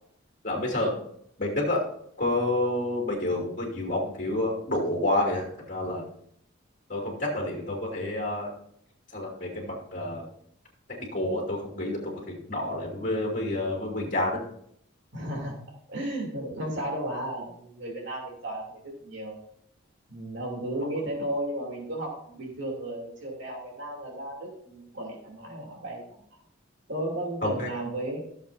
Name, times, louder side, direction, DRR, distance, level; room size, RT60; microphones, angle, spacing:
voice 1, 0.4-0.9 1.4-1.9 2.2-6.0 6.9-8.5 9.1-10.2 11.0-14.4 27.4-27.7, left 1 dB, 40° left, -2 dB, 2.8 m, -29 dB
voice 2, 15.1-15.6 15.9-19.4 20.1-26.2 26.9-28.2, right 1 dB, 60° right, -3 dB, 3.0 m, -34 dB
15.5 x 7.2 x 2.7 m, 0.70 s
head